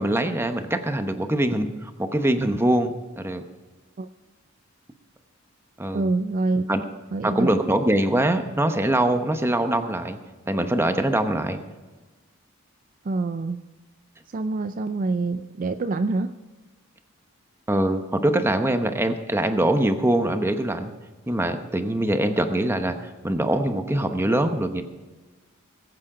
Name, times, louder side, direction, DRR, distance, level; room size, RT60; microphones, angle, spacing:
voice 1, 0.0-2.9 3.2-3.4 5.8-6.1 6.7-6.8 7.2-10.2 10.5-11.6 17.7-20.9 21.3-22.9 23.2-24.8, right 1 dB, 10° right, 7 dB, 0.9 m, -23 dB
voice 2, 5.9-6.6 7.1-7.5 13.0-13.6 14.3-16.3, right 3 dB, 40° right, 10 dB, 0.4 m, -25 dB
20.5 x 8.4 x 5.0 m, 1.3 s
head